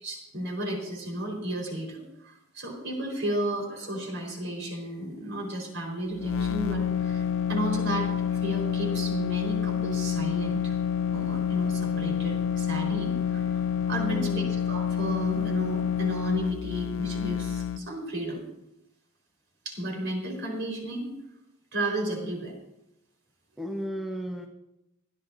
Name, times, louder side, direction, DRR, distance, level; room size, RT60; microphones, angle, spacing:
voice 1, 0.0-10.7 11.1-13.6 13.9-18.4 19.6-21.1 21.7-22.5, right 1 dB, 60° right, -1 dB, 4.2 m, -33 dB
sound 1, 6.1-17.8, left 8 dB, 70° left, 0.6 m, -28 dB
voice 2, 14.0-14.6 23.6-24.5, equal, ahead, 1 dB, 1.0 m, -34 dB
25.0 x 10.5 x 2.6 m, 0.88 s
head